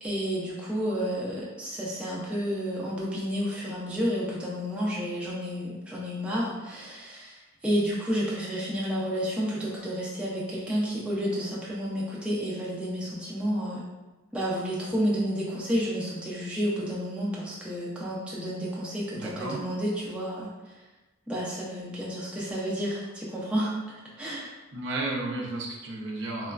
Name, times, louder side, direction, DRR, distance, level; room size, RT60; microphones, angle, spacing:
voice 1, 0.0-13.8 14.3-20.8 21.3-23.7 24.2-24.6, equal, 5° right, -6 dB, 0.3 m, -30 dB
voice 2, 19.1-19.6 24.7-26.5, right 2 dB, 65° right, -1 dB, 0.5 m, -33 dB
3.0 x 2.2 x 2.3 m, 1.1 s
head